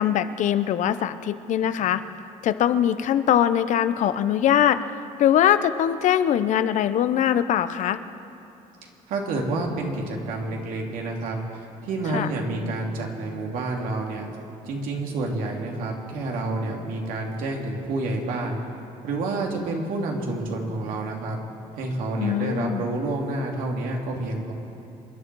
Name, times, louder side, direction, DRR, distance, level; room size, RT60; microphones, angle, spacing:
voice 1, 0.0-2.0 2.4-4.8 5.2-8.0 12.1-12.3 22.2-22.8, left 10 dB, 60° left, 12 dB, 0.7 m, -22 dB
voice 2, 9.1-11.4 11.8-14.3 14.6-18.6 19.0-21.4 21.8-24.5, right 2 dB, 80° right, 0 dB, 2.5 m, -29 dB
27.5 x 10.5 x 4.7 m, 2.8 s
cardioid pair, 110°, 14 cm